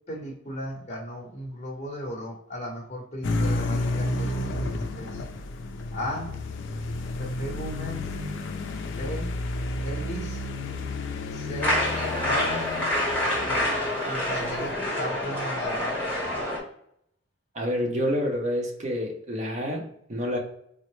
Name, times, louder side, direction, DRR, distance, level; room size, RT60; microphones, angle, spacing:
voice 1, 0.1-5.3 5.9-6.3 7.2-8.1 8.8-9.3 9.8-10.4 11.3-11.9 12.2-12.6 13.4-15.9, equal, 35° left, -1 dB, 0.8 m, -36 dB
sound 1, 3.2-14.8, left 2 dB, 70° left, 0.4 m, -32 dB
sound 2, 11.6-16.6, left 1 dB, 10° left, 1.1 m, -27 dB
voice 2, 17.5-20.4, equal, 40° right, 0 dB, 0.7 m, -28 dB
3.7 x 2.1 x 3.0 m, 0.71 s
head